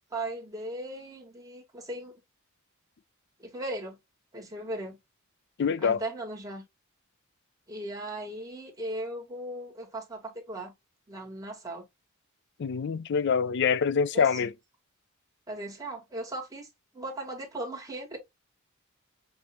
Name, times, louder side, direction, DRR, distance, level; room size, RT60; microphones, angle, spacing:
voice 1, 0.0-2.1 3.4-4.0 4.3-5.0 5.8-6.6 7.7-10.7 11.1-11.9 14.1-14.3 15.5-16.7 16.9-18.2, right 1 dB, 15° right, 1.8 m, -37 dB
voice 2, 5.6-6.0 12.6-14.5, left 6 dB, 55° left, 0.4 m, -25 dB
6.2 x 2.8 x 2.9 m
head